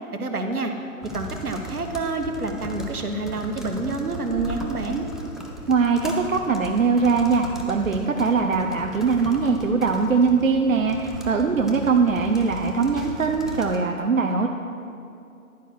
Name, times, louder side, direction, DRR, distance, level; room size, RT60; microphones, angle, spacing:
voice 1, 0.2-0.7 1.1-5.1, right 3 dB, 80° right, 4 dB, 1.3 m, -28 dB
sound 1, 1.0-13.8, equal, ahead, 0.4 m, -38 dB
voice 2, 5.7-14.5, right 4 dB, 65° right, 3 dB, 0.7 m, -21 dB
11.0 x 4.7 x 6.3 m, 2.6 s
figure-of-eight pair, 165°, 44 cm